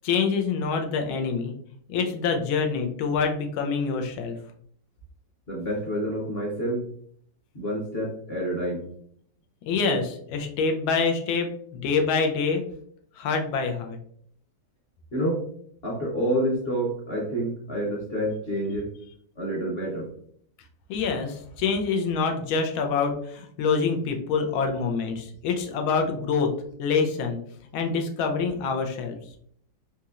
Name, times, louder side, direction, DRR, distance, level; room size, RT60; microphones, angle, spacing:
voice 1, 0.0-1.5 1.9-4.4 9.7-12.6 13.2-14.0 20.9-26.5 26.8-27.4 27.7-29.2, left 5 dB, 85° left, 4 dB, 1.5 m, -26 dB
voice 2, 5.5-6.8 7.5-8.8 15.1-15.4 15.8-18.9 19.4-20.1, right 1 dB, 45° left, -4 dB, 0.8 m, -28 dB
4.2 x 2.8 x 2.4 m, 0.63 s
omnidirectional pair, 2.2 m